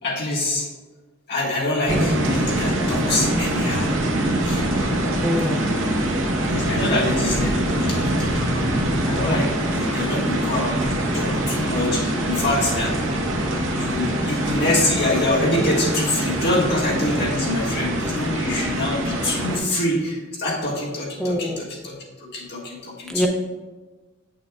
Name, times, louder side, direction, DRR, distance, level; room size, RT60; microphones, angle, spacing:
voice 1, 0.0-0.7 1.3-3.9 4.4-4.6 6.5-8.7 9.0-12.9 13.7-23.3, left 2 dB, 55° left, -3 dB, 1.4 m, -25 dB
sound 1, 1.9-19.6, right 1 dB, 70° right, 0.9 m, -23 dB
voice 2, 5.2-5.7 21.2-21.6 23.1-23.3, equal, ahead, 0 dB, 0.6 m, -24 dB
7.2 x 6.4 x 2.3 m, 1.3 s
head